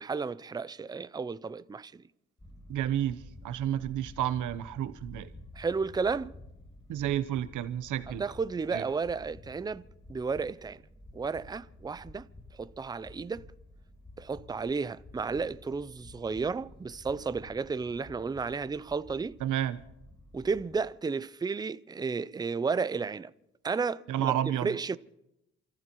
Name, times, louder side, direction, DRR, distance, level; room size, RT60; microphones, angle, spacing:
voice 1, 0.0-1.9 5.6-6.3 8.2-9.8 10.1-10.8 11.1-12.3 12.6-13.5 14.2-19.4 20.3-23.3 23.6-24.3 24.6-25.0, right 5 dB, 15° right, 0.5 m, -32 dB
sound 1, 2.4-20.8, left 1 dB, 15° left, 7.6 m, -51 dB
voice 2, 2.7-5.3 6.9-8.2 8.7-8.8 19.4-19.8 24.1-24.8, right 11 dB, 80° right, 0.9 m, -31 dB
28.5 x 14.5 x 3.0 m
cardioid pair, 90°, 30 cm